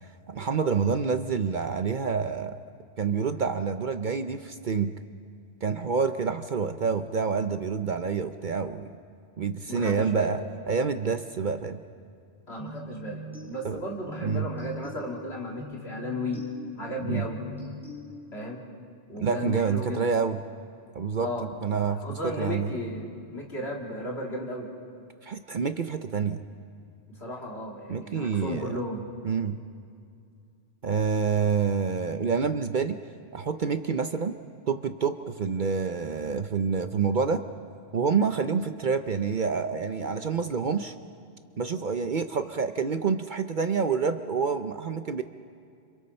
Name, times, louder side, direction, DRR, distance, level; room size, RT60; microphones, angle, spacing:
voice 1, 0.3-2.6 3.0-4.9 5.6-8.9 9.4-10.4 10.7-11.8 13.6-13.8 14.2-14.5 17.0-17.2 19.2-20.4 20.9-21.3 21.6-22.7 25.2-26.4 27.9-28.7 29.2-29.6 30.8-33.0 33.3-34.3 34.7-37.4 37.9-40.9 41.6-45.2, right 5 dB, 50° right, 8 dB, 0.8 m, -27 dB
voice 2, 9.7-10.4 12.5-16.5 16.8-17.4 18.3-18.6 19.1-20.0 21.2-21.5 22.0-24.7 27.1-29.0, left 1 dB, 65° left, -2 dB, 3.3 m, -34 dB
sound 1, 12.6-18.6, left 1 dB, ahead, 4.2 m, -42 dB
30.0 x 26.5 x 4.4 m, 2.4 s
omnidirectional pair, 1.2 m